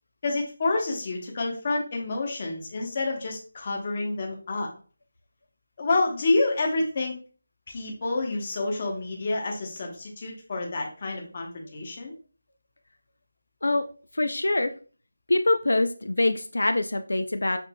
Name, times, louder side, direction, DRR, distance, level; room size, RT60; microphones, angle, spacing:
voice 1, 0.2-4.7 5.8-7.1 7.7-12.1, left 2 dB, 30° left, 1 dB, 0.8 m, -28 dB
voice 2, 14.1-14.7 15.3-17.6, left 2 dB, 85° left, 8 dB, 0.4 m, -24 dB
5.9 x 2.5 x 2.2 m, 0.39 s
figure-of-eight pair, 175°, 0 cm